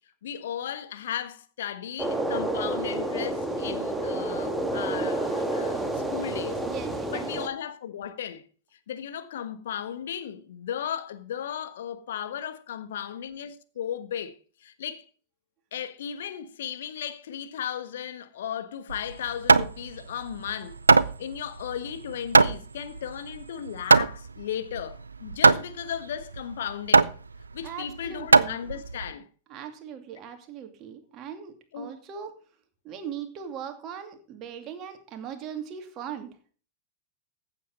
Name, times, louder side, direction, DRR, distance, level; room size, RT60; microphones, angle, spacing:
voice 1, 0.2-6.7 7.1-8.4 8.9-15.0 15.7-20.8 21.2-27.1 27.5-29.3 31.7-31.9, left 9 dB, 60° left, 1.4 m, -35 dB
sound 1, 2.0-7.5, right 1 dB, 5° right, 2.0 m, -29 dB
voice 2, 6.6-7.4 27.6-28.6 29.5-32.3 32.8-36.5, right 8 dB, 35° right, 2.5 m, -39 dB
Hammer, 18.9-29.1, right 4 dB, 75° right, 0.5 m, -22 dB
15.0 x 8.3 x 4.0 m
figure-of-eight pair, 90°, 0 cm